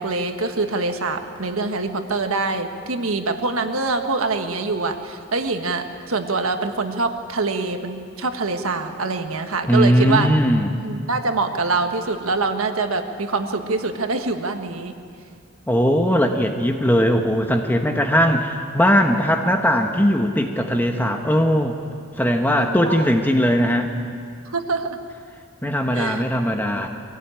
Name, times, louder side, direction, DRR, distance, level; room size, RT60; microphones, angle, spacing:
voice 1, 0.0-10.3 10.8-14.9 22.4-23.1 24.4-25.0 25.9-26.2, right 3 dB, 85° right, 6 dB, 1.5 m, -25 dB
voice 2, 9.7-10.8 15.7-21.7 22.2-23.9 25.6-26.9, equal, 10° left, 3 dB, 1.1 m, -19 dB
23.0 x 17.5 x 9.0 m, 2.3 s
head